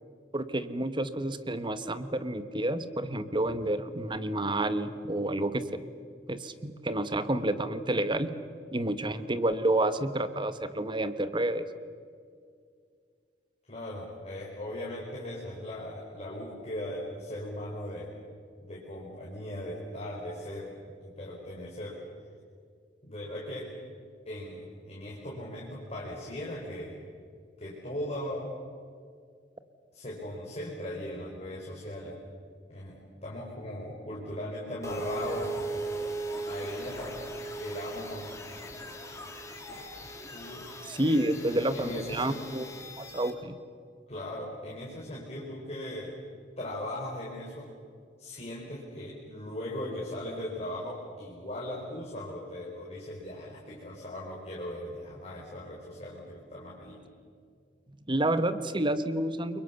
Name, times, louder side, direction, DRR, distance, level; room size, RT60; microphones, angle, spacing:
voice 1, 0.3-5.8 6.3-8.3 8.7-11.6 40.9-43.6 57.9-59.6, right 1 dB, 25° right, 12 dB, 1.2 m, -29 dB
voice 2, 13.7-18.1 18.6-20.7 21.0-22.0 23.0-23.7 24.3-27.0 27.6-28.6 29.9-32.1 32.7-35.5 36.4-37.3 37.6-38.4 40.3-40.7 41.0-41.3 41.7-42.4 44.1-46.1 46.6-47.7 48.2-57.0, left 1 dB, 35° left, -4 dB, 4.6 m, -38 dB
sound 1, 34.8-43.3, right 2 dB, 15° left, 3.1 m, -39 dB
30.0 x 23.5 x 7.1 m, 2.2 s
head